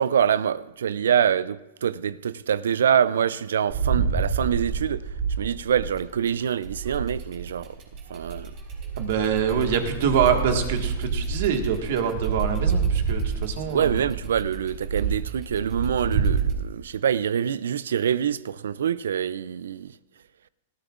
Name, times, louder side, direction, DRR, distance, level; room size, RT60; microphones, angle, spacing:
voice 1, 0.0-5.0 5.4-7.8 8.1-8.5 13.7-19.9, right 8 dB, 85° right, 0.4 m, -25 dB
sound 1, 3.7-6.2 6.6-16.5, right 5 dB, 40° right, 4.1 m, -28 dB
voice 2, 9.0-13.9, right 7 dB, 65° right, 1.6 m, -25 dB
18.5 x 14.0 x 2.5 m
hypercardioid pair, 125°, 0 cm